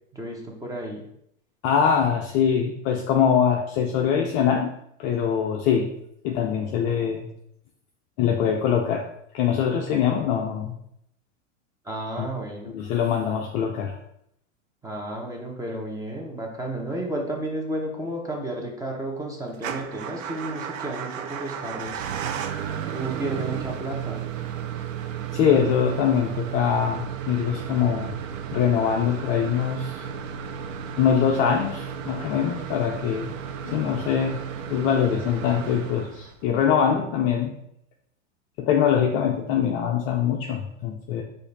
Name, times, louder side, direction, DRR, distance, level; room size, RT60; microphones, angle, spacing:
voice 1, 0.1-1.0 11.8-12.7 14.8-22.0 22.9-24.2, right 1 dB, 10° right, 0 dB, 0.8 m, -32 dB
voice 2, 1.6-4.7 5.0-5.9 6.2-7.3 8.2-9.0 9.3-10.7 12.2-12.3 12.7-14.0 25.3-28.1 28.5-30.0 31.0-33.3 33.6-34.4 34.7-37.5 38.6-41.2, left 8 dB, 30° left, 1 dB, 0.4 m, -23 dB
Motor vehicle (road) / Engine starting / Idling, 19.5-36.5, right 8 dB, 75° right, 0.6 m, -33 dB
4.9 x 2.5 x 4.0 m, 0.74 s
hypercardioid pair, 115°, 39 cm